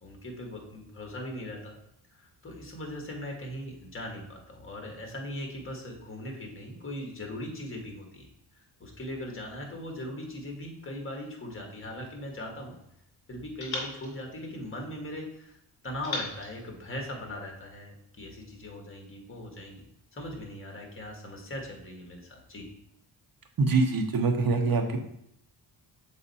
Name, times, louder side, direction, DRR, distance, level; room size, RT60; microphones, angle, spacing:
voice 1, 0.0-1.7 2.1-12.7 13.3-15.6 15.8-22.7, left 1 dB, 25° left, 1 dB, 1.5 m, -40 dB
sound 1, 11.8-13.0 13.6-15.2 16.0-17.6, left 3 dB, 55° left, 2.0 m, -41 dB
voice 2, 23.6-25.0, right 3 dB, 50° right, 4 dB, 1.0 m, -24 dB
6.4 x 4.1 x 4.2 m, 0.74 s
cardioid pair, 115°, 45 cm